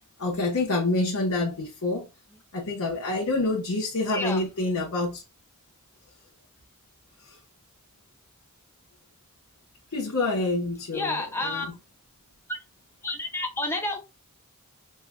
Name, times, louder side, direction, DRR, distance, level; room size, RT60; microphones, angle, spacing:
voice 1, 0.2-2.1 2.5-5.2 9.9-11.7, left 2 dB, 85° left, 1.0 m, -27 dB
voice 2, 4.1-4.5 10.9-11.7 12.5-12.6 13.0-14.0, left 2 dB, 10° left, 0.6 m, -30 dB
5.5 x 2.4 x 2.2 m
head